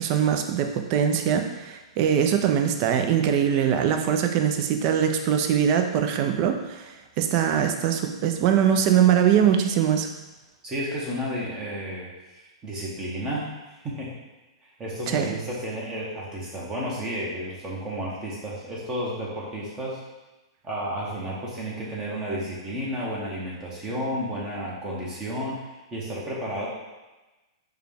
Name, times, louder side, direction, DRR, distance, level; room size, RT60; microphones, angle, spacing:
voice 1, 0.0-6.9 7.2-10.1 15.1-15.3, right 9 dB, 45° right, 5 dB, 0.4 m, -22 dB
voice 2, 10.6-14.1 14.6-20.0 20.6-26.7, equal, 20° right, -5 dB, 0.9 m, -32 dB
4.7 x 2.3 x 3.5 m, 1.1 s
hypercardioid pair, 125°, 3 cm